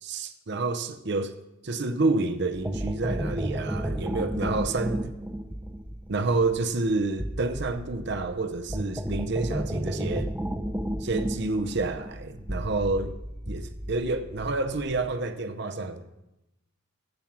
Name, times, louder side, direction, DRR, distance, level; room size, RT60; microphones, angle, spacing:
voice 1, 0.0-1.3 1.6-5.1 6.1-10.3 11.0-13.1 13.5-16.0, right 3 dB, 50° right, 0.7 m, -29 dB
sound 1, 2.5-15.2, equal, 5° right, 0.6 m, -33 dB
14.5 x 5.3 x 5.9 m
head